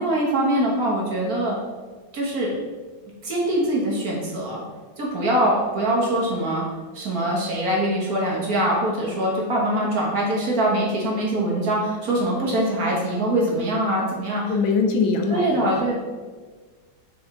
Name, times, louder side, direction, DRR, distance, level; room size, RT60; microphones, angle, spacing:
voice 1, 0.0-1.6 2.1-2.5 3.2-4.6 5.0-6.6 6.9-14.5 15.3-15.9, right 1 dB, 50° right, -3 dB, 1.8 m, -23 dB
voice 2, 14.5-15.7, left 4 dB, 75° left, 4 dB, 1.4 m, -22 dB
6.0 x 5.1 x 3.9 m, 1.4 s
omnidirectional pair, 2.2 m